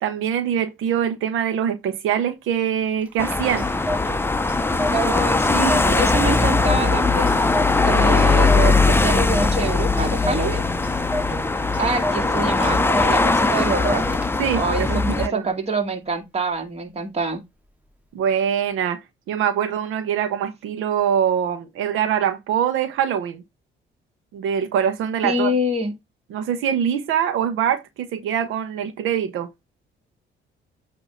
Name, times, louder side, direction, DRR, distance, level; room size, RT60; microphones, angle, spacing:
voice 1, 0.0-3.7 5.5-5.9 14.4-15.5 18.1-19.0 19.3-23.4 24.3-25.5 26.3-29.5, right 9 dB, 90° right, 0.9 m, -23 dB
Clock, 3.0-14.6, equal, 5° right, 1.4 m, -33 dB
sound 1, 3.2-15.3, left 3 dB, 10° left, 0.6 m, -20 dB
voice 2, 4.9-7.4 7.8-10.6 11.8-14.0 14.5-17.4 25.2-25.9, right 2 dB, 30° right, 2.1 m, -25 dB
8.2 x 2.8 x 5.6 m
cardioid pair, 90°, 20 cm